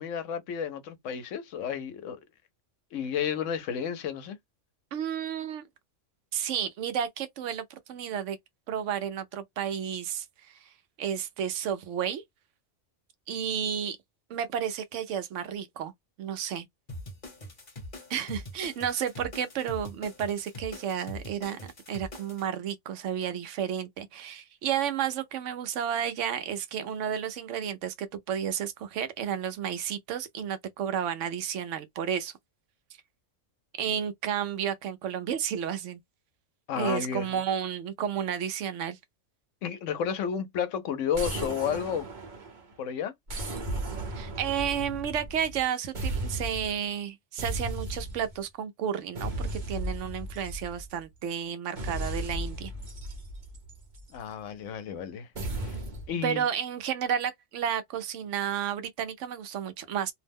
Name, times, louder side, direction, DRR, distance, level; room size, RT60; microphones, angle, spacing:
voice 1, 0.0-2.2 2.9-4.4 36.7-37.3 39.6-42.1 42.8-43.1 54.1-55.3 55.6-55.8 56.1-56.4, left 7 dB, 75° left, 1.0 m, -32 dB
voice 2, 4.9-5.6 6.3-8.4 8.7-10.7 11.0-12.2 13.3-14.0 14.3-15.9 16.2-16.7 18.1-32.3 33.8-36.0 36.8-39.0 44.1-52.7 56.2-60.1, right 9 dB, 75° right, 0.9 m, -32 dB
sound 1, 16.9-22.4, left 1 dB, 35° left, 1.1 m, -43 dB
sound 2, 41.1-42.7 43.3-45.6 45.9-46.8 47.4-48.4 49.1-51.0 51.8-54.2 55.3-56.1, right 1 dB, 45° right, 0.9 m, -35 dB
2.6 x 2.1 x 3.4 m
omnidirectional pair, 1.3 m